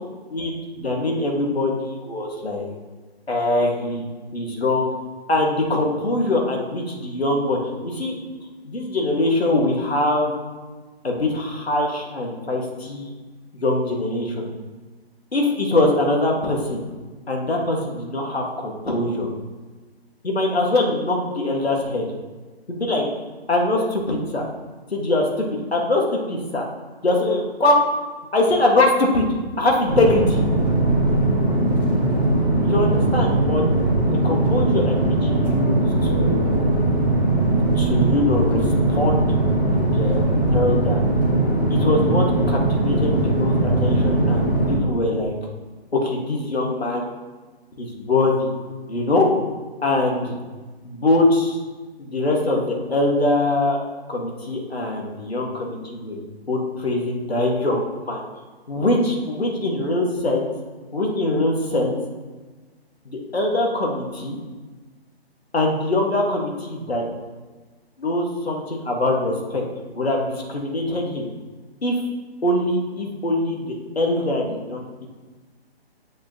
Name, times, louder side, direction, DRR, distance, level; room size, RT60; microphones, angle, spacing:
voice 1, 0.3-1.7 2.0-2.8 3.3-4.0 4.3-4.9 5.3-8.2 8.6-10.3 11.0-13.1 13.5-14.5 15.3-16.8 17.3-19.3 20.2-22.1 22.7-23.0 23.5-24.4 24.9-26.0 26.3-26.6 27.0-27.9 28.3-29.3 29.6-30.4 32.6-33.6 34.2-36.5 37.8-38.6 38.9-39.3 39.9-40.2 40.5-41.0 41.7-45.3 46.0-47.1 47.8-48.5 48.9-49.3 49.8-50.3 50.8-51.6 52.0-53.8 54.1-56.2 56.5-58.2 58.7-60.5 60.9-62.0 63.0-64.4 65.5-67.1 68.0-69.6 69.9-71.3 71.8-72.0 72.4-75.1, left 2 dB, 70° left, 0 dB, 1.8 m, -22 dB
sound 1, 29.9-44.7, right 2 dB, 10° left, 0.5 m, -20 dB
7.4 x 6.8 x 2.9 m, 1.3 s
figure-of-eight pair, 140°, 32 cm